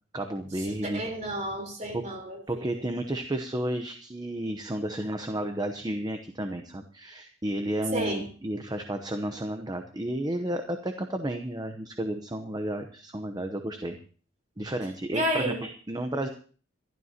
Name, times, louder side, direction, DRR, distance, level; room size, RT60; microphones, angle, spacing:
voice 1, 0.1-1.0 1.9-2.0 2.5-14.0 14.6-16.3, right 1 dB, 20° right, 6 dB, 0.8 m, -32 dB
voice 2, 0.8-2.4 7.9-8.3 15.1-15.6, right 1 dB, 35° right, 3 dB, 3.9 m, -30 dB
26.0 x 12.5 x 2.9 m, 0.41 s
head